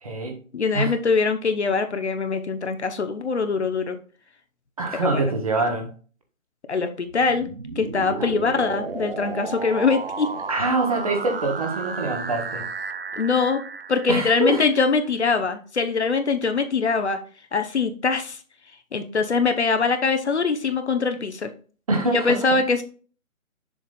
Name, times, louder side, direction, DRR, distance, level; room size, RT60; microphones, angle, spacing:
voice 1, 0.0-0.4 0.7-0.9 4.8-5.9 8.2-8.3 10.5-12.7 14.1-14.6 21.9-22.4, right 3 dB, 25° right, 3 dB, 1.2 m, -24 dB
voice 2, 0.5-4.0 5.0-5.3 6.7-7.5 7.8-10.3 13.1-13.6 13.9-17.2 17.5-18.4 18.9-21.5 22.1-22.8, left 4 dB, 55° left, 7 dB, 0.9 m, -23 dB
sound 1, 7.1-15.0, right 4 dB, 45° right, 0.5 m, -33 dB
7.2 x 5.7 x 2.3 m, 0.39 s
hypercardioid pair, 165°, 42 cm